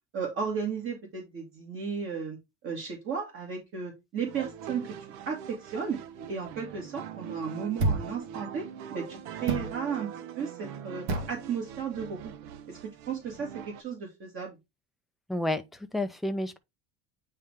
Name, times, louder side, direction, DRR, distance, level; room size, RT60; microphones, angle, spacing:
voice 1, 0.1-2.4 2.6-4.9 5.3-6.0 6.3-8.6 8.9-12.3 12.7-12.8 13.1-14.6, right 6 dB, 40° right, 2.1 m, -34 dB
sound 1, 4.3-13.8, right 8 dB, 65° right, 0.8 m, -42 dB
sound 2, 7.8-8.2 9.5-9.8 11.1-11.4, right 3 dB, 90° right, 1.5 m, -28 dB
voice 2, 15.3-16.6, left 1 dB, ahead, 0.4 m, -30 dB
8.8 x 3.2 x 3.5 m
cardioid pair, 145°, 31 cm